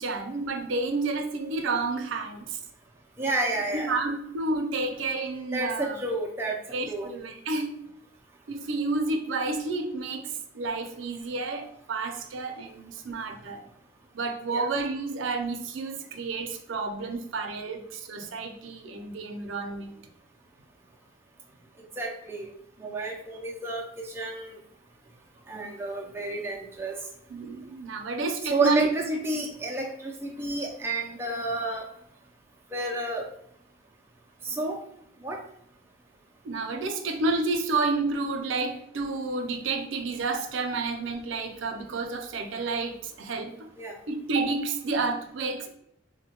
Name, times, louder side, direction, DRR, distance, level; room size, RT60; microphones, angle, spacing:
voice 1, 0.0-2.6 3.7-6.0 6.7-7.8 8.5-13.6 14.1-19.9 27.3-28.9 36.4-43.7 44.1-45.7, right 3 dB, 80° right, 5 dB, 0.5 m, -30 dB
voice 2, 3.2-3.9 5.5-6.6 6.9-7.1 14.5-14.7 22.0-22.5 22.8-24.6 25.5-27.0 28.5-31.8 32.7-33.2 34.4-34.8 35.2-35.4 43.8-43.9, right 2 dB, 15° right, -1 dB, 0.4 m, -30 dB
3.6 x 2.1 x 2.8 m, 0.72 s
head